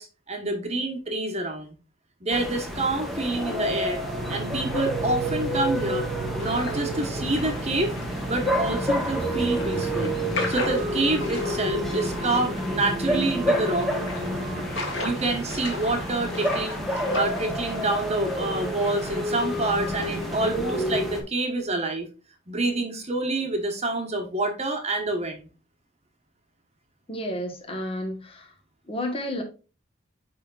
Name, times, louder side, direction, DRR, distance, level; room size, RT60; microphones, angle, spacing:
voice 1, 0.0-1.7 2.2-4.0 4.3-6.1 6.3-7.9 8.2-10.2 10.5-13.9 15.0-16.8 17.1-22.1 22.5-25.5, right 2 dB, 30° right, 1.3 m, -27 dB
sound 1, 2.3-21.2, equal, ahead, 1.2 m, -29 dB
sound 2, 4.0-16.0, right 4 dB, 50° right, 0.6 m, -38 dB
sound 3, 6.4-20.3, left 2 dB, 60° left, 2.2 m, -38 dB
voice 2, 27.1-28.5 28.9-29.4, left 1 dB, 30° left, 1.4 m, -31 dB
10.0 x 3.7 x 2.5 m
head